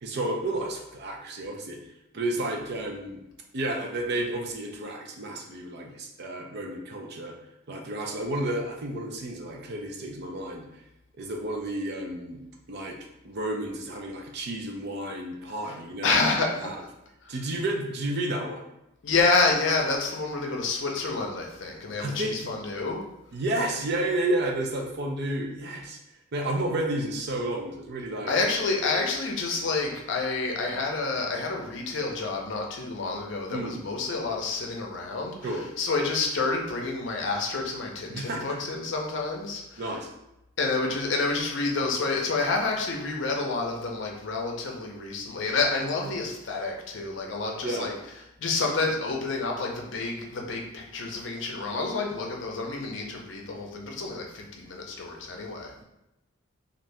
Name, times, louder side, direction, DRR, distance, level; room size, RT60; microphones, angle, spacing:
voice 1, 0.0-1.8 2.1-3.2 3.5-7.4 7.7-10.7 11.2-12.4 12.7-13.0 13.2-16.2 16.6-16.8 17.3-18.6 22.0-22.5 23.3-26.0 26.3-28.3 33.5-33.8 35.4-35.6 38.1-38.8 39.8-40.1 46.0-46.2 47.6-47.9, right 1 dB, 55° right, 2 dB, 0.5 m, -31 dB
voice 2, 16.0-16.7 17.2-17.3 19.0-23.0 28.3-39.8 40.6-47.9 48.4-55.7, left 3 dB, 65° left, 0 dB, 0.6 m, -28 dB
3.2 x 2.6 x 2.6 m, 0.89 s
head